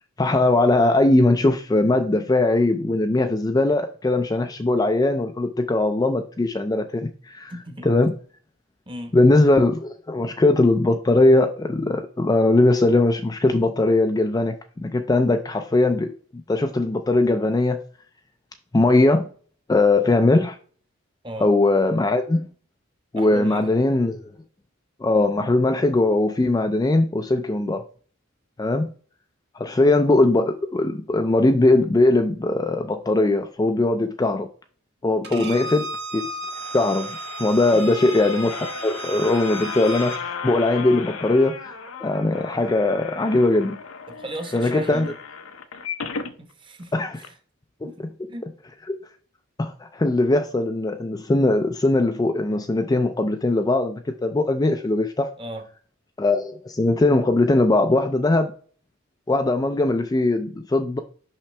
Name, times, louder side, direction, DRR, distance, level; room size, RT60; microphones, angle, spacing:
voice 1, 0.2-7.5 7.8-8.1 9.1-16.1 16.5-17.8 18.7-19.3 19.7-20.6 21.4-22.5 23.1-24.2 25.0-27.8 28.6-28.9 29.5-34.5 35.0-35.8 36.1-36.3 36.7-43.8 44.5-45.1 46.9-47.2 48.9-49.0 49.6-55.3 56.2-58.5 59.3-61.0, left 2 dB, 20° left, 0.3 m, -20 dB
voice 2, 7.5-7.9 8.9-9.2 21.2-21.5 23.1-23.7 35.3-35.6 37.7-38.0 44.1-45.1 46.4-47.3 47.8-48.5 55.4-55.7, right 1 dB, 25° right, 0.9 m, -36 dB
Bowed string instrument, 35.2-40.2, right 2 dB, 50° right, 0.9 m, -34 dB
sound 1, 36.2-46.3 46.8-46.9 47.2-47.3, left 5 dB, 75° left, 0.7 m, -35 dB
5.7 x 5.6 x 3.3 m
head